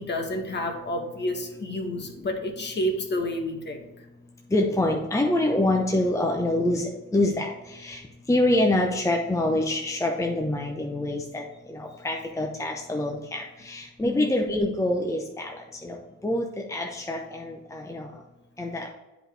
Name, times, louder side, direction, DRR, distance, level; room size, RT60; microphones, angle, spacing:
voice 1, 0.0-3.8 14.0-14.3, left 1 dB, 35° left, 4 dB, 1.2 m, -30 dB
voice 2, 4.5-8.0 8.3-15.5 15.8-16.0 16.2-18.1 18.6-18.9, left 1 dB, 10° left, 1 dB, 0.8 m, -26 dB
8.7 x 5.0 x 3.3 m, 1.1 s
cardioid pair, 105°, 33 cm